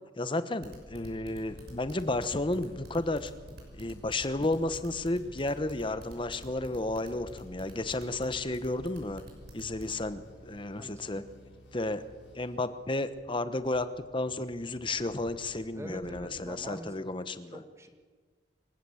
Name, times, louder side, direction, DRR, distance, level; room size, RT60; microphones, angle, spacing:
voice 1, 0.2-3.3 3.7-9.2 9.5-11.2 11.7-12.0 12.3-13.9 14.1-17.6, left 2 dB, 30° left, 12 dB, 1.1 m, -32 dB
sound 1, 0.6-9.9, right 1 dB, 60° right, 5.8 m, -48 dB
sound 2, 1.5-13.2, right 1 dB, 85° left, 7.0 m, -56 dB
voice 2, 10.8-11.2 15.8-16.9 17.5-17.9, right 1 dB, 15° right, 5 dB, 2.0 m, -44 dB
sound 3, 13.0-16.8, equal, 80° right, 2.5 m, -58 dB
26.5 x 16.0 x 7.2 m, 1.5 s
head